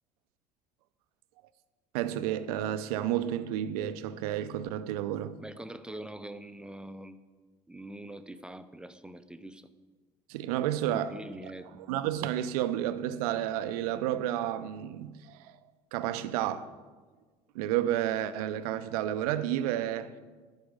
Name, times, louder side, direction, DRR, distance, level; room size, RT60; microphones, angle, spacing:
voice 1, 1.9-5.4 10.3-11.2 11.9-15.6 15.9-16.7 17.5-20.1, right 12 dB, 70° right, 0.6 m, -31 dB
voice 2, 5.4-7.2 7.7-9.7 10.9-11.7, right 1 dB, 5° right, 0.6 m, -43 dB
10.5 x 5.0 x 8.0 m
figure-of-eight pair, 60°, 20 cm